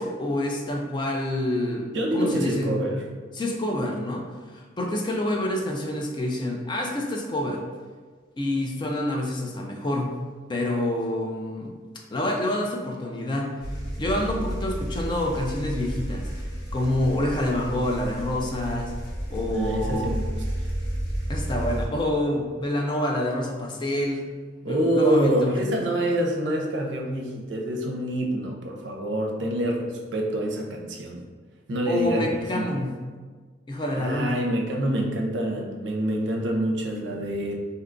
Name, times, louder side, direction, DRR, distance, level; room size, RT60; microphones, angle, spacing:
voice 1, 0.0-1.9 2.1-2.8 3.3-4.3 4.5-7.6 8.4-10.2 10.5-11.7 12.1-13.5 14.0-18.9 19.3-20.2 21.3-24.2 24.6-25.6 31.9-33.0 33.7-34.4, left 1 dB, 25° left, 1 dB, 0.3 m, -27 dB
voice 2, 1.9-3.0 19.5-20.2 24.6-31.2 31.7-32.7 33.9-37.6, right 1 dB, 70° right, 0 dB, 0.5 m, -26 dB
sound 1, 13.6-21.9, equal, 55° left, 0.7 m, -31 dB
2.7 x 2.3 x 3.7 m, 1.5 s
head